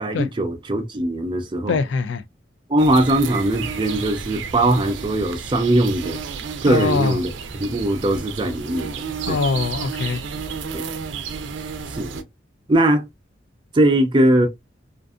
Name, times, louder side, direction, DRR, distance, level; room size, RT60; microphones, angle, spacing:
voice 1, 0.0-1.8 2.7-6.2 6.6-8.9 9.3-9.4 10.7-10.9 11.9-12.2 12.7-13.1 13.7-14.5, right 1 dB, 25° right, 0.4 m, -20 dB
voice 2, 1.7-2.2 6.7-7.2 9.3-10.2, left 4 dB, 80° left, 0.4 m, -22 dB
sound 1, 2.8-12.2, right 6 dB, 85° right, 0.4 m, -32 dB
2.5 x 2.5 x 2.3 m
head